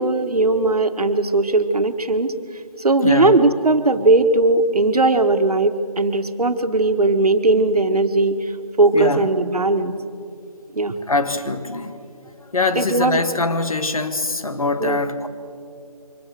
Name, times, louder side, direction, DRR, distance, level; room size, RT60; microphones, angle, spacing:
voice 1, 0.0-2.4 2.8-8.5 8.8-9.9 10.7-10.9 12.7-13.2 14.8-15.0, right 2 dB, 75° right, 8 dB, 1.5 m, -18 dB
voice 2, 3.0-3.4 8.9-9.3 11.1-11.9 12.5-15.3, left 3 dB, 65° left, 9 dB, 1.6 m, -23 dB
24.0 x 18.5 x 6.8 m, 2.5 s
figure-of-eight pair, 175°, 20 cm